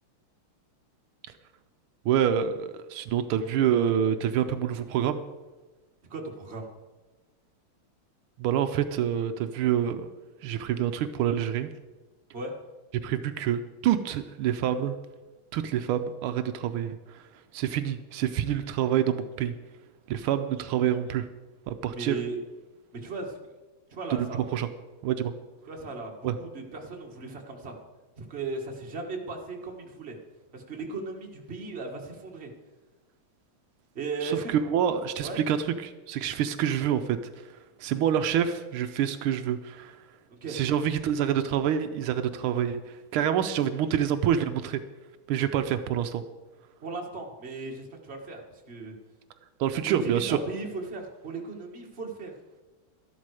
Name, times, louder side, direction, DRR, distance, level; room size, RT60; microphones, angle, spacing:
voice 1, 2.0-5.2 8.4-10.1 10.4-11.7 13.0-14.9 15.5-17.2 17.5-19.5 20.1-21.3 21.7-22.2 24.1-24.3 24.5-24.7 25.0-25.3 26.2-26.3 34.2-37.5 37.8-40.0 40.5-44.8 45.3-46.2 49.6-50.4, right 9 dB, 85° right, 9 dB, 1.5 m, -27 dB
voice 2, 6.1-6.7 12.3-12.5 21.9-22.4 22.9-23.4 23.9-24.4 25.7-27.8 28.2-30.2 30.5-32.5 34.0-34.5 35.2-35.4 40.3-40.6 46.8-48.9 49.9-52.3, right 3 dB, 30° right, 1 dB, 1.7 m, -36 dB
12.5 x 11.5 x 4.8 m, 1.2 s
omnidirectional pair, 2.4 m